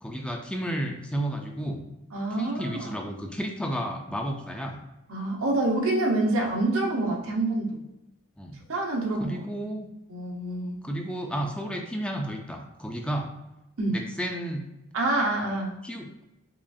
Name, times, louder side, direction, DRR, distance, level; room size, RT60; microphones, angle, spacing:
voice 1, 0.0-1.8 2.4-4.8 8.4-8.6 9.2-9.9 10.8-13.3 13.9-14.6 15.8-16.2, right 1 dB, 5° left, 2 dB, 0.4 m, -32 dB
voice 2, 2.1-2.9 5.1-7.8 8.7-9.4 10.1-10.8 13.8-14.0 14.9-15.7, right 2 dB, 80° right, 0 dB, 0.8 m, -27 dB
4.9 x 2.4 x 2.6 m, 0.92 s
head